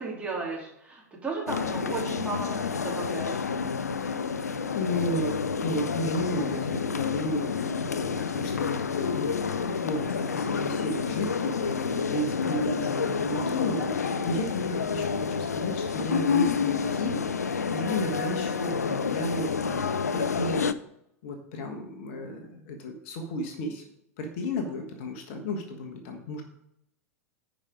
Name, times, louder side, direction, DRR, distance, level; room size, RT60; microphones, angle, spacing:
voice 1, 0.0-3.4 18.0-18.3 22.1-22.7 24.6-24.7, right 3 dB, 15° right, -3 dB, 3.1 m, -35 dB
sound 1, 1.5-20.7, left 5 dB, 80° left, 0.4 m, -29 dB
voice 2, 4.0-4.4 4.7-20.7 21.2-22.4 22.7-23.8 24.2-26.4, left 1 dB, 50° left, 4 dB, 1.4 m, -33 dB
9.6 x 5.3 x 5.2 m, 0.79 s
figure-of-eight pair, 90°, 9 cm